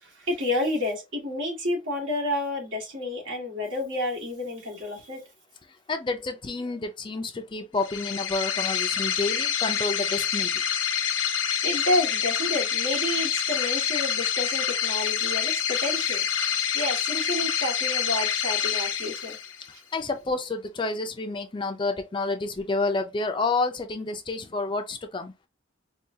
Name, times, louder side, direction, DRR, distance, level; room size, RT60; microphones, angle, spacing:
voice 1, 0.0-5.2 11.6-19.4, left 1 dB, 75° right, 1.9 m, -30 dB
voice 2, 5.9-10.6 19.9-25.3, left 3 dB, 25° left, 0.4 m, -29 dB
sound 1, 7.8-19.7, left 8 dB, 70° left, 0.7 m, -27 dB
4.6 x 2.3 x 2.7 m
head